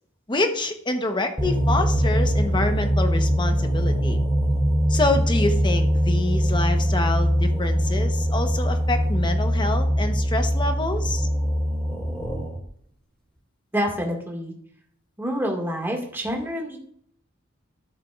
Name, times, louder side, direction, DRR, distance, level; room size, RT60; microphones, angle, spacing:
voice 1, 0.3-4.2 4.9-11.3, left 2 dB, 25° left, 6 dB, 0.9 m, -26 dB
sound 1, 1.4-12.7, equal, 5° left, 3.2 m, -22 dB
voice 2, 13.7-14.5 15.2-16.8, equal, 10° right, 0 dB, 1.8 m, -27 dB
13.0 x 7.5 x 2.4 m, 0.65 s
head